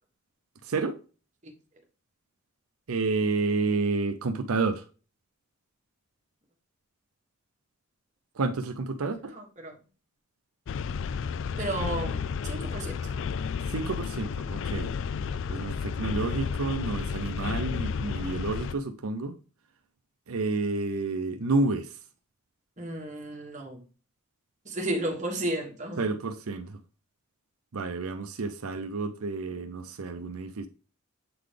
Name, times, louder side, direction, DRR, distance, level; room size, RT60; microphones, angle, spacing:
voice 1, 0.6-1.0 2.9-4.8 8.4-9.3 13.7-14.9 15.5-19.3 20.3-22.0 26.0-26.8 27.7-30.7, right 3 dB, 85° right, 0.6 m, -30 dB
voice 2, 9.3-9.8 11.6-13.2 22.8-23.8 24.6-26.1, right 1 dB, 35° right, 1.4 m, -33 dB
sound 1, 10.7-18.7, left 6 dB, 60° left, 0.3 m, -32 dB
7.7 x 3.9 x 3.3 m
head